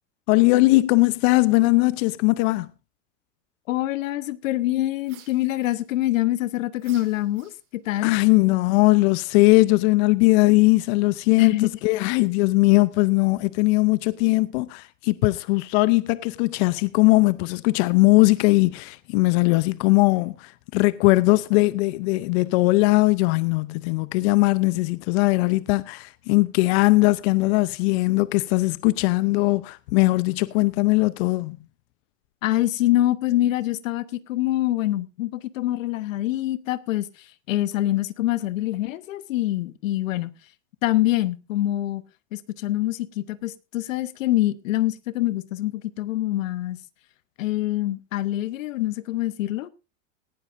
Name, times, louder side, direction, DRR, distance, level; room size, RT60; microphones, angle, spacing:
voice 1, 0.3-2.7 8.0-31.6, left 22 dB, 55° left, 0.7 m, -20 dB
voice 2, 3.7-8.1 11.4-11.7 32.4-40.3 40.8-42.0 42.3-46.8 47.4-49.7, left 15 dB, 85° left, 1.1 m, -25 dB
sound 1, 5.0-6.2 6.8-8.0, right 11 dB, 65° right, 3.6 m, -52 dB
18.0 x 12.5 x 2.6 m
supercardioid pair, 130°, 38 cm